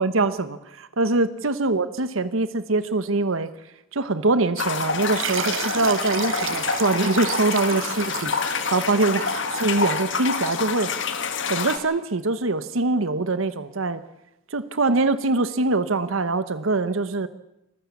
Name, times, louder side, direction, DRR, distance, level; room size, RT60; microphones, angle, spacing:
voice 1, 0.0-3.5 3.9-10.9 11.5-14.0 14.5-17.3, right 3 dB, 90° right, 13 dB, 1.1 m, -23 dB
sound 1, 4.6-11.8, left 5 dB, 65° left, 2.1 m, -27 dB
sound 2, 5.0-10.1, right 9 dB, 70° right, 0.7 m, -33 dB
26.0 x 14.5 x 8.5 m, 0.87 s
head